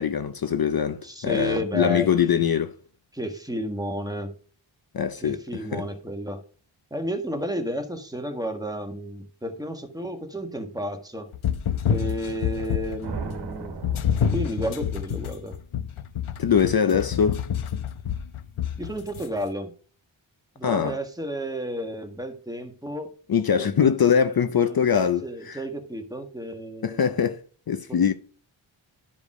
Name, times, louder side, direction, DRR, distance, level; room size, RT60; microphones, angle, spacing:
voice 1, 0.0-2.7 4.9-5.9 16.4-17.4 20.6-21.0 23.3-25.6 26.8-27.4 27.7-28.1, left 7 dB, 50° left, 0.7 m, -23 dB
voice 2, 1.0-2.1 3.1-4.3 5.2-6.4 6.9-11.3 11.9-13.7 14.2-15.6 18.8-19.7 20.5-23.1 23.6-23.9 24.7-27.1 27.9-28.1, equal, 10° right, 1.5 m, -32 dB
sound 1, 11.3-13.1 13.8-19.3, left 8 dB, 90° left, 1.0 m, -28 dB
sound 2, 13.0-15.0, right 5 dB, 55° right, 1.6 m, -36 dB
13.0 x 5.2 x 4.8 m
wide cardioid pair, 130°, 47 cm